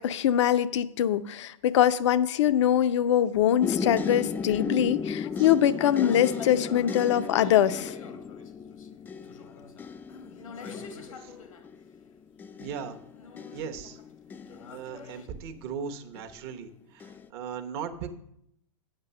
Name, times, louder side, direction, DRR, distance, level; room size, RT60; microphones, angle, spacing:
voice 1, 0.0-7.9, left 10 dB, 60° left, 13 dB, 0.6 m, -23 dB
sound 1, 3.6-15.5 16.1-16.6 17.0-17.3, left 6 dB, 10° left, 0.3 m, -36 dB
sound 2, 5.2-11.7 13.1-15.3, left 5 dB, 80° left, 1.3 m, -46 dB
voice 2, 12.6-13.0 13.5-14.0 14.7-18.1, right 7 dB, 50° right, 6 dB, 1.1 m, -38 dB
8.9 x 5.5 x 6.7 m, 0.73 s
hypercardioid pair, 120°, 17 cm